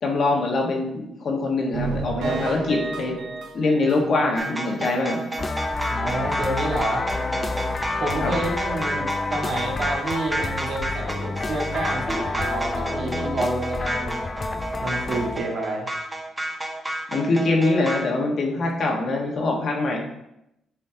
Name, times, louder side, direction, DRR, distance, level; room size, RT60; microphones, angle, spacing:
voice 1, 0.0-3.2 3.5-5.2 8.2-8.3 17.1-20.0, left 2 dB, 55° left, 0 dB, 1.5 m, -23 dB
sound 1, 1.7-4.5 4.9-5.0 5.3-5.4 5.8-5.9, right 4 dB, 85° right, 0.8 m, -31 dB
sound 2, 4.4-18.0, right 1 dB, 15° right, 0.8 m, -31 dB
sound 3, 5.4-15.4, left 3 dB, 30° left, 0.4 m, -29 dB
voice 2, 5.9-7.1 7.9-14.2 14.8-15.9, right 1 dB, 60° right, -1 dB, 1.8 m, -29 dB
8.4 x 4.3 x 2.9 m, 0.83 s
cardioid pair, 90°, 0 cm